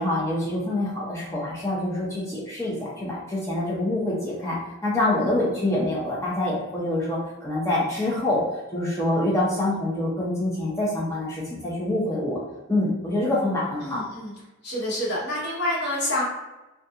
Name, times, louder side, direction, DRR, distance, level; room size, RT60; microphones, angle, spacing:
voice 1, 0.0-4.6 4.8-8.4 8.7-12.4 12.7-14.0, left 1 dB, 15° left, -6 dB, 0.5 m, -26 dB
voice 2, 13.8-14.3 14.6-16.2, left 1 dB, 55° left, -7 dB, 1.0 m, -27 dB
2.4 x 2.3 x 2.6 m, 1.0 s
head